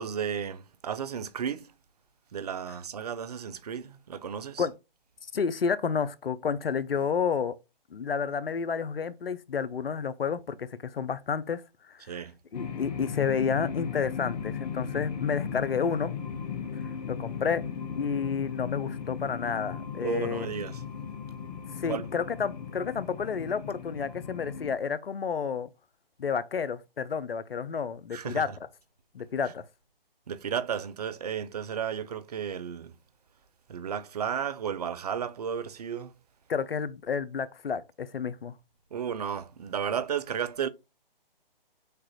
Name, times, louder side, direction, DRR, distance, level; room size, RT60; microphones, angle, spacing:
voice 1, 0.0-1.7 2.3-4.7 12.0-12.3 20.0-20.8 21.9-22.1 28.1-28.6 30.3-32.9 33.7-36.1 38.9-40.7, right 8 dB, 45° right, 0.5 m, -33 dB
voice 2, 5.3-7.5 7.9-11.6 11.9-12.2 12.5-16.1 17.1-17.6 17.9-20.5 21.8-25.7 26.2-28.5 29.1-29.6 36.5-38.5, left 6 dB, 75° left, 0.7 m, -30 dB
sound 1, 12.5-24.8, left 7 dB, 45° left, 0.8 m, -37 dB
6.6 x 2.5 x 3.0 m
figure-of-eight pair, 145°, 29 cm